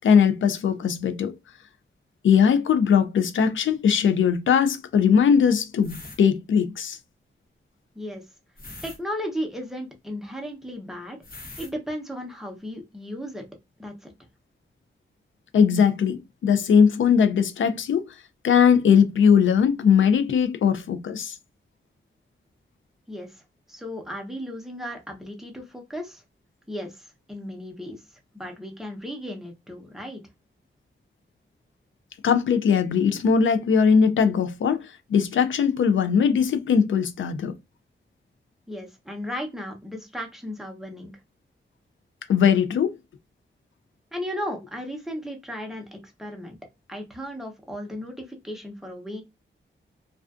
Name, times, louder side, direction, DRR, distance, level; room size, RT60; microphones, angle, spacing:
voice 1, 0.0-1.3 2.2-7.0 15.5-18.1 18.4-21.4 32.2-37.6 42.3-43.0, left 7 dB, 85° left, 0.4 m, -20 dB
sound 1, 5.8-6.2 8.6-9.0 11.2-11.7, left 2 dB, 45° left, 0.8 m, -41 dB
voice 2, 8.8-11.2 11.6-13.4 13.8-14.1 23.1-23.4 23.7-26.2 26.7-28.0 28.3-30.2 38.7-41.1 44.1-46.6 46.9-49.2, equal, ahead, 0.7 m, -35 dB
2.4 x 2.3 x 2.3 m
wide cardioid pair, 95°, 20 cm